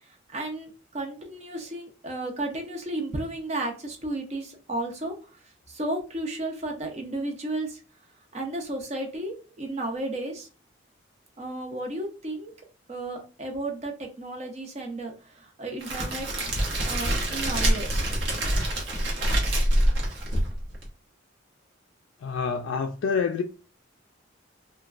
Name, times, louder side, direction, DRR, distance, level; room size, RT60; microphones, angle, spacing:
voice 1, 0.0-7.8 8.3-10.5 11.4-12.5 12.9-16.3 16.8-18.1, right 2 dB, 35° right, 0.6 m, -33 dB
Crackle, 15.8-20.9, right 1 dB, 65° right, 0.9 m, -25 dB
voice 2, 22.2-23.4, left 5 dB, 75° left, 0.3 m, -27 dB
3.0 x 2.3 x 2.4 m
head